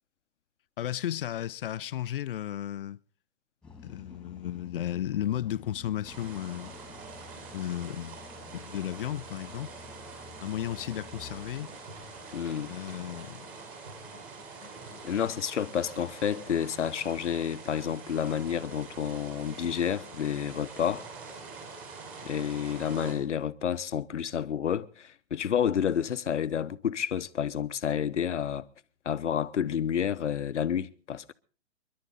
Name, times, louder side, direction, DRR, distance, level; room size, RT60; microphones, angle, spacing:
voice 1, 0.8-3.0 3.8-6.7 7.5-8.2 8.4-9.7 10.4-11.7 12.7-13.5, left 11 dB, 50° left, 0.7 m, -34 dB
sound 1, 3.6-13.3, left 5 dB, 5° left, 2.5 m, -51 dB
sound 2, 6.0-23.1, right 4 dB, 25° right, 6.1 m, -45 dB
sound 3, 11.5-15.8 17.0-17.4, left 1 dB, 90° right, 5.5 m, -55 dB
voice 2, 12.3-12.7 15.0-21.1 22.2-28.7 29.0-31.3, left 8 dB, 80° left, 1.1 m, -30 dB
28.5 x 11.5 x 4.0 m
hypercardioid pair, 150°, 35 cm